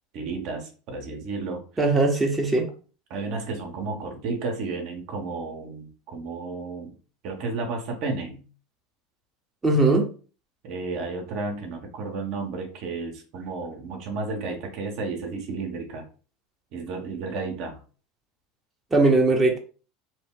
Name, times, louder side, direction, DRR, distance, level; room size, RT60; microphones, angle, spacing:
voice 1, 0.1-1.6 3.1-7.0 7.2-8.4 10.6-16.0 16.7-17.8, right 3 dB, 60° right, 0.8 m, -32 dB
voice 2, 1.8-2.7 9.6-10.1 18.9-19.6, right 2 dB, 20° right, 0.8 m, -20 dB
2.8 x 2.1 x 3.6 m
hypercardioid pair, 90°, 0 cm